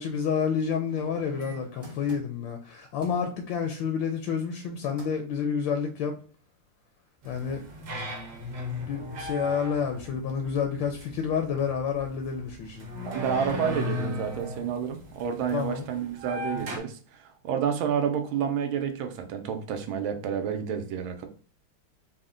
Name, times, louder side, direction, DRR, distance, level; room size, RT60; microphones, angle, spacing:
voice 1, 0.0-6.1 7.2-7.6 8.8-12.9 15.5-15.8, left 6 dB, 75° left, 1.2 m, -29 dB
sound 1, 0.9-2.6 3.0-3.3 4.5-4.7 5.0-5.3 5.8-5.9, left 3 dB, 20° right, 0.8 m, -44 dB
sound 2, 7.2-16.8, left 1 dB, 60° right, 1.5 m, -37 dB
voice 2, 13.0-21.3, right 7 dB, 80° right, 1.4 m, -30 dB
4.2 x 2.1 x 3.7 m
omnidirectional pair, 2.2 m